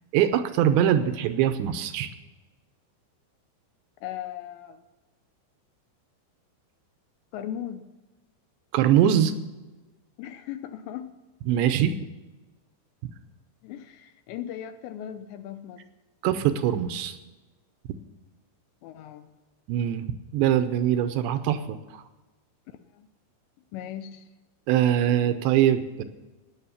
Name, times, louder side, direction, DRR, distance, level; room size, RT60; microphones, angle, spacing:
voice 1, 0.1-2.1 8.7-9.3 11.5-12.0 16.2-17.2 19.7-20.1 20.3-22.0 24.7-26.0, right 10 dB, 80° right, 10 dB, 2.7 m, -22 dB
voice 2, 4.0-4.8 7.3-7.9 10.2-11.1 13.6-15.8 18.8-19.3 22.9-23.1 23.7-24.3, left 10 dB, 80° left, 10 dB, 2.7 m, -37 dB
16.5 x 9.6 x 7.2 m, 1.2 s
omnidirectional pair, 5.6 m